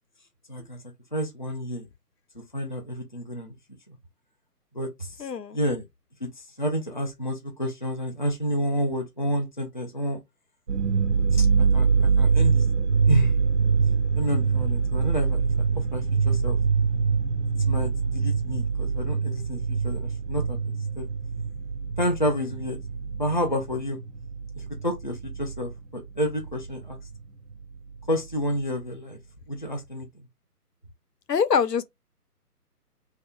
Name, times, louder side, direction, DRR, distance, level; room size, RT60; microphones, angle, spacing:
voice 1, 0.5-0.8 1.1-1.9 2.5-3.5 3.9-4.0 4.7-5.3 5.5-5.8 6.2-10.2 11.3-12.7 13.1-13.3 14.2-16.6 17.7-21.1 22.0-22.8 23.2-24.0 24.6-27.0 28.1-29.2 29.5-30.1, equal, 35° left, 0.4 m, -30 dB
voice 2, 5.2-5.6 31.3-31.8, left 6 dB, 90° left, 0.6 m, -24 dB
sound 1, 10.7-25.8 26.0-27.2 27.5-27.6 28.0-28.6, right 5 dB, 45° right, 0.5 m, -24 dB
2.7 x 2.1 x 3.6 m
figure-of-eight pair, 140°, 47 cm